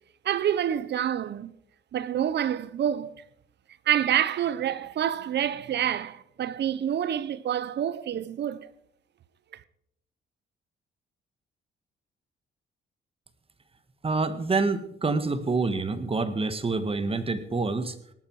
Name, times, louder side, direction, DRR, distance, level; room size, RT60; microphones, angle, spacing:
voice 1, 0.2-1.5 1.9-3.2 3.9-8.7 9.5-9.6, right 10 dB, 60° right, 0.9 m, -27 dB
voice 2, 14.0-18.0, right 3 dB, 30° right, 1.7 m, -27 dB
18.5 x 11.5 x 4.8 m
cardioid pair, 90°, 20 cm